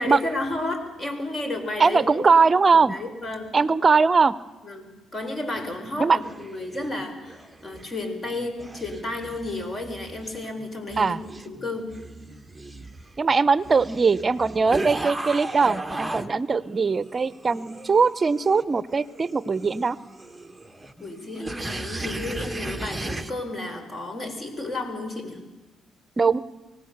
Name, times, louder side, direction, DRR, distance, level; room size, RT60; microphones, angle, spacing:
voice 1, 0.0-2.2 2.7-3.6 4.6-11.9 21.0-25.4, left 2 dB, 35° left, 7 dB, 4.3 m, -32 dB
voice 2, 1.8-2.9 3.5-4.3 6.0-6.2 11.0-11.2 13.2-20.0 26.2-26.4, right 4 dB, 30° right, 17 dB, 0.7 m, -20 dB
sound 1, 5.5-7.9 8.3-16.3 16.7-23.3, right 2 dB, 10° right, 1.2 m, -36 dB
25.0 x 18.0 x 6.7 m, 1.2 s
cardioid pair, 90°, 0 cm